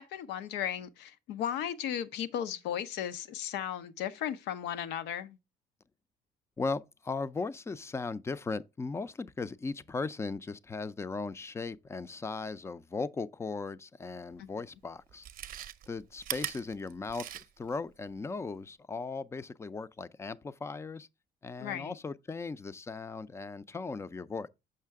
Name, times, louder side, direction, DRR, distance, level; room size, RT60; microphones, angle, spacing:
voice 1, 0.0-5.4 14.4-14.5 21.6-21.9, left 10 dB, 90° left, 0.6 m, -35 dB
voice 2, 6.6-15.3 15.9-21.1 21.4-24.5, left 4 dB, 15° left, 0.3 m, -37 dB
Chewing mastication, 14.3-14.4 15.1-17.7 18.1-18.2, right 11 dB, 55° right, 0.6 m, -40 dB
6.6 x 5.6 x 3.5 m
cardioid pair, 110°, 17 cm